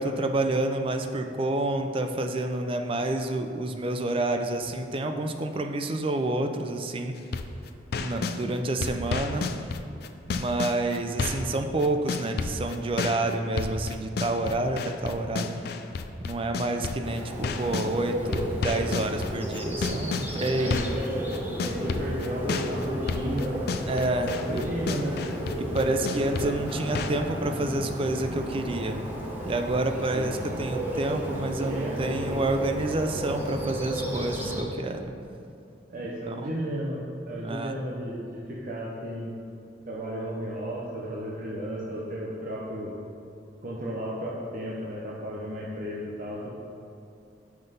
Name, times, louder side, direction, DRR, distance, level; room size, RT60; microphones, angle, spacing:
voice 1, 0.0-7.1 8.0-9.5 10.3-15.6 16.2-20.8 23.9-24.6 25.6-29.0 29.4-35.0 36.3-36.5 37.4-37.7, right 2 dB, 30° right, 6 dB, 0.4 m, -28 dB
sound 1, 7.2-8.4 8.8-11.6 11.8-17.9 18.3-27.1, left 4 dB, 60° left, 0.4 m, -31 dB
Bird, 17.0-34.6, equal, 10° right, 0.9 m, -33 dB
voice 2, 20.5-21.3 21.6-23.7 24.3-25.3 26.4-26.5 30.1-30.3 31.7-32.2 35.9-39.4 39.9-43.0 43.6-46.5, equal, 50° right, -5 dB, 0.8 m, -34 dB
5.8 x 5.4 x 5.5 m, 2.5 s
head